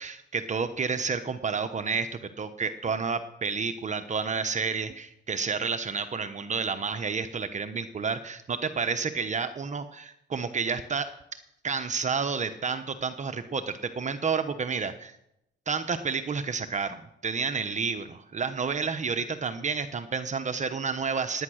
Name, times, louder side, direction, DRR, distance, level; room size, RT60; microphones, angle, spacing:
voice 1, 0.0-2.1 2.4-11.1 11.6-15.2 15.7-17.0 17.2-21.4, right 5 dB, 35° right, 9 dB, 1.0 m, -30 dB
18.0 x 9.7 x 6.4 m, 0.81 s
cardioid pair, 90°, 20 cm